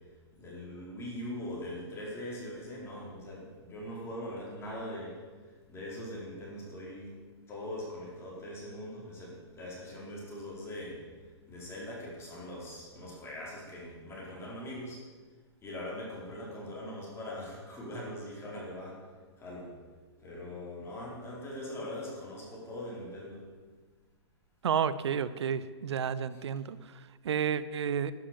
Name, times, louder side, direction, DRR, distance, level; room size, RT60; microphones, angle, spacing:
voice 1, 0.4-5.1 5.7-7.1 7.5-11.0 11.5-15.0 15.6-19.0 19.4-19.7 20.2-23.4, left 1 dB, 15° left, -5 dB, 4.7 m, -41 dB
voice 2, 24.6-28.1, right 8 dB, 70° right, 15 dB, 0.8 m, -31 dB
12.0 x 10.0 x 7.6 m, 1.4 s
hypercardioid pair, 130°, 15 cm